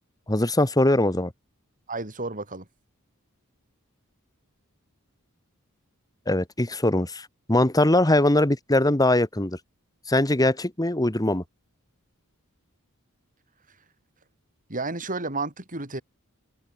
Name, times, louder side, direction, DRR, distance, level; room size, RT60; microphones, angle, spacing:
voice 1, 0.3-1.3 6.3-9.6 10.1-11.4, left 1 dB, 15° left, 1.7 m, -21 dB
voice 2, 1.9-2.7 14.7-16.0, right 3 dB, 40° right, 6.8 m, -31 dB
head